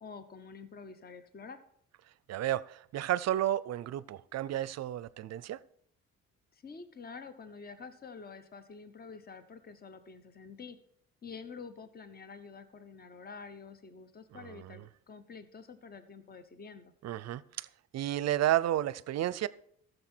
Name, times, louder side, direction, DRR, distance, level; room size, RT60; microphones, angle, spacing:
voice 1, 0.0-1.6 6.5-10.8 11.2-16.9, left 5 dB, 30° left, 0.9 m, -48 dB
voice 2, 2.3-5.6 14.3-14.8 17.0-17.7 17.9-19.5, right 13 dB, 60° right, 0.5 m, -32 dB
14.0 x 6.7 x 4.4 m
cardioid pair, 90°, 30 cm